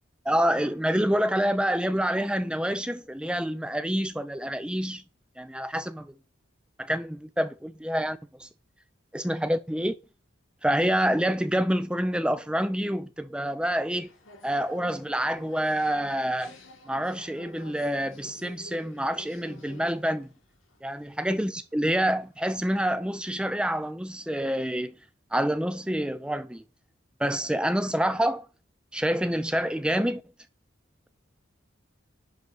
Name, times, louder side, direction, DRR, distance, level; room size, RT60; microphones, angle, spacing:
voice 1, 0.2-5.0 5.4-6.2 6.8-8.5 9.1-9.9 10.6-14.1 14.4-16.5 16.9-20.3 20.8-24.9 25.3-26.6 27.2-28.5 28.9-30.2, equal, 5° right, 0.6 m, -27 dB
sound 1, 14.0-23.9, left 1 dB, 90° left, 2.2 m, -50 dB
10.5 x 4.0 x 6.2 m
head